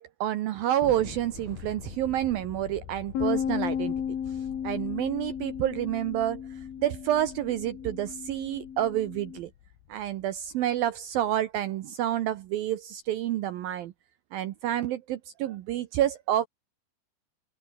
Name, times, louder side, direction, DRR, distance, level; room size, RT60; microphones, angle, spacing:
voice 1, 0.0-3.9 4.6-6.4 6.8-9.5 9.9-13.9 14.3-16.5, right 12 dB, 80° right, 2.1 m, -29 dB
Thunder, 0.8-11.5, left 11 dB, 70° left, 3.9 m, -47 dB
Bass guitar, 3.2-9.4, left 8 dB, 85° left, 6.2 m, -34 dB
open air
omnidirectional pair, 5.4 m